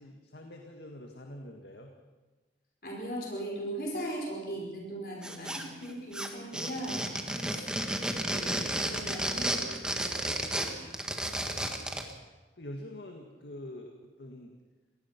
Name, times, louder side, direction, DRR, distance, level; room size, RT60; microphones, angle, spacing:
voice 1, 0.0-1.9 7.2-7.9 11.1-12.1 12.6-14.5, left 1 dB, 75° left, 3 dB, 2.0 m, -46 dB
voice 2, 2.8-7.1 7.5-7.7 8.3-10.9, right 1 dB, 55° left, -2 dB, 5.3 m, -39 dB
sound 1, 5.2-5.9 6.1-12.1, right 1 dB, 5° right, 1.6 m, -32 dB
25.5 x 19.0 x 6.0 m, 1.2 s
head